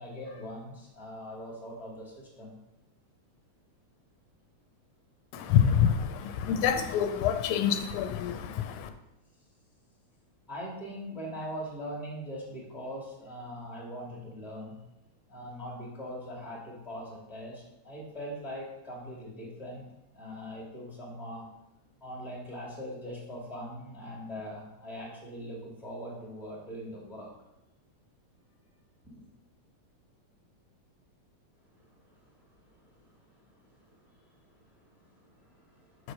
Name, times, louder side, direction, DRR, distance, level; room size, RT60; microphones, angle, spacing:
voice 1, 0.0-2.5 10.5-14.8 15.3-19.9 20.1-21.5 22.0-27.4 29.0-29.3 31.7-36.1, equal, ahead, -4 dB, 1.9 m, -42 dB
voice 2, 5.3-8.9 36.0-36.1, left 8 dB, 85° left, 8 dB, 2.0 m, -26 dB
6.6 x 4.8 x 6.3 m, 0.91 s
omnidirectional pair, 3.4 m